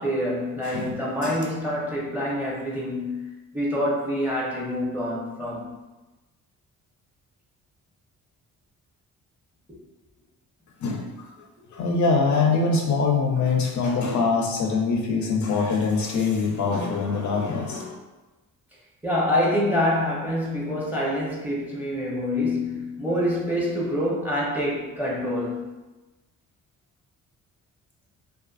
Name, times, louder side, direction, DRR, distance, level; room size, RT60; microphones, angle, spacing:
voice 1, 0.0-3.3 3.5-5.7 19.0-25.7, left 1 dB, 5° right, -5 dB, 0.7 m, -26 dB
voice 2, 0.6-1.4 10.8-11.3 11.7-18.0, left 4 dB, 60° left, 1 dB, 0.5 m, -24 dB
2.5 x 2.5 x 2.4 m, 1.1 s
cardioid pair, 90°, 34 cm